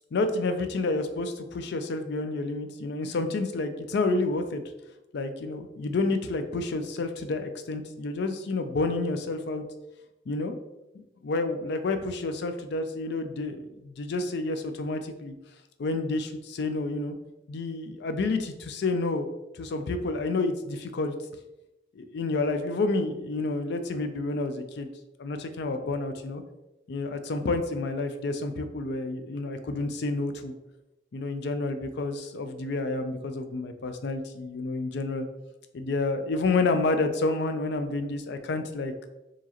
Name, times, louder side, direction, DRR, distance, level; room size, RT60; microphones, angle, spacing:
voice 1, 0.1-4.6 5.1-9.6 10.3-10.6 10.9-15.3 15.8-17.2 17.5-19.3 19.5-21.1 22.0-24.9 25.2-26.4 26.9-30.5 31.1-35.3 35.7-38.9, left 3 dB, 65° left, 8 dB, 0.4 m, -29 dB
4.6 x 3.0 x 2.9 m, 0.96 s
head